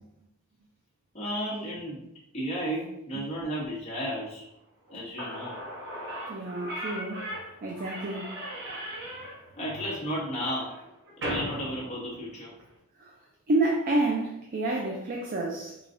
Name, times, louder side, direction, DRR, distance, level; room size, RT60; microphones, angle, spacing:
voice 1, 1.1-2.1 2.3-4.4 4.9-5.6 9.5-10.8 11.2-12.5, equal, 30° left, 1.2 m, -33 dB
Slam / Squeak, 4.9-5.0 5.2-12.7, equal, 60° right, 1.1 m, -38 dB
voice 2, 6.3-7.3 7.6-8.4 13.0-13.1 13.5-15.8, right 2 dB, 45° right, 0.4 m, -29 dB
4.8 x 2.3 x 2.6 m
head